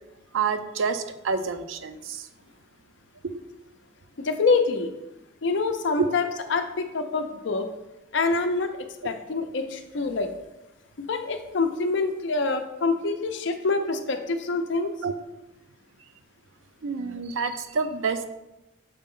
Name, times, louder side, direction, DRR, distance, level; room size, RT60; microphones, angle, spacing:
voice 1, 0.3-2.3 3.2-3.4 6.0-6.1 15.0-15.1 16.8-18.3, right 5 dB, 80° right, 9 dB, 0.5 m, -28 dB
voice 2, 4.2-4.9 5.4-7.7 8.1-8.7 9.0-10.3 11.0-14.9, left 3 dB, 65° left, 7 dB, 0.5 m, -26 dB
6.6 x 4.1 x 3.7 m, 0.97 s
head